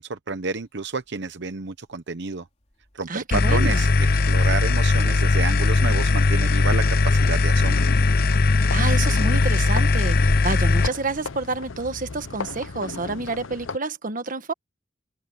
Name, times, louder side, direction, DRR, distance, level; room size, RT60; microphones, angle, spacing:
voice 1, 0.0-2.5 3.0-7.8, right 4 dB, 60° right, 0.9 m, -30 dB
sound 1, 0.5-13.8, equal, 35° left, 3.2 m, -43 dB
voice 2, 3.1-3.9 8.7-14.5, right 3 dB, 45° right, 1.3 m, -29 dB
sound 2, 3.3-10.9, left 3 dB, 50° left, 0.7 m, -19 dB
sound 3, 7.6-13.8, left 4 dB, 90° left, 0.8 m, -36 dB
open air
head